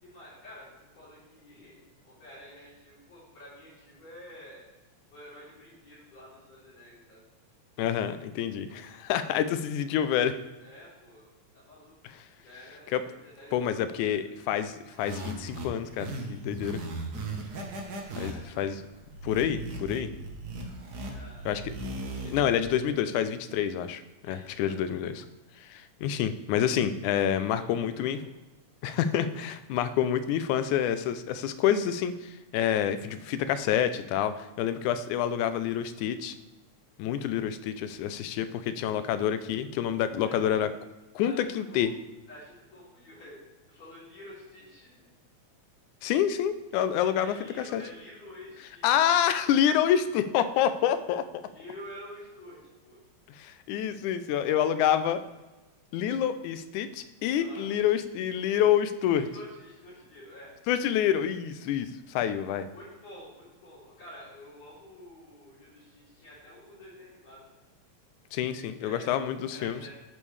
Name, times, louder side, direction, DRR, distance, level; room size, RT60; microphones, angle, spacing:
voice 1, 0.0-4.6 5.1-7.3 10.6-12.0 12.3-14.6 18.2-18.7 21.1-21.5 24.2-24.8 27.3-28.1 40.2-40.6 41.2-41.9 42.3-43.4 43.7-45.1 47.0-49.1 51.5-53.0 57.3-57.7 59.0-60.5 62.7-67.4 68.8-69.9, left 1 dB, 60° left, -11 dB, 4.4 m, -49 dB
voice 2, 7.8-10.3 12.9-13.0 13.5-16.8 18.2-18.8 19.2-20.1 21.5-21.7 22.3-24.0 24.3-25.2 25.6-28.2 28.8-36.4 37.0-40.7 41.2-41.9 46.0-47.4 47.7-47.8 48.8-51.3 53.4-55.2 55.9-59.3 60.7-62.7 68.3-69.8, left 9 dB, 85° left, 11 dB, 2.0 m, -27 dB
sound 1, 14.9-22.6, right 2 dB, 70° right, 0.9 m, -38 dB
13.5 x 5.4 x 3.2 m, 1.1 s
omnidirectional pair, 3.4 m